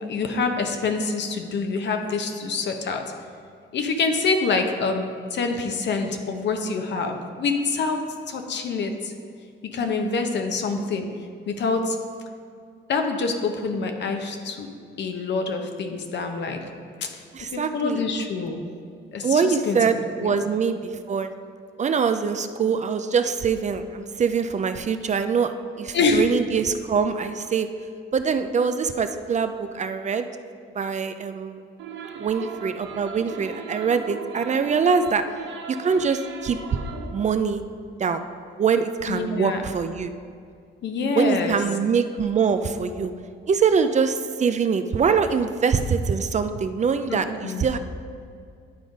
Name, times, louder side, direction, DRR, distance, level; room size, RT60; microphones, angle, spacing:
voice 1, 0.0-3.0 3.7-5.0 5.3-8.0 8.3-9.1 9.7-11.1 11.5-12.0 12.9-14.7 15.0-16.6 17.0-17.1 17.5-18.6 19.1-19.8 20.2-20.4 25.9-26.3 39.1-39.6 40.8-41.6 47.1-47.6, left 4 dB, 60° left, 5 dB, 0.9 m, -26 dB
voice 2, 17.3-18.0 19.2-20.8 21.1-21.3 21.8-27.7 28.1-30.3 30.8-31.6 32.2-35.2 35.7-36.6 37.1-37.6 38.0-38.2 38.6-40.1 41.1-43.1 43.5-47.8, right 6 dB, 35° right, 9 dB, 0.4 m, -23 dB
sound 1, 31.8-37.3, right 5 dB, 75° right, 0.8 m, -38 dB
11.0 x 3.8 x 5.0 m, 2.3 s
cardioid pair, 90°, 20 cm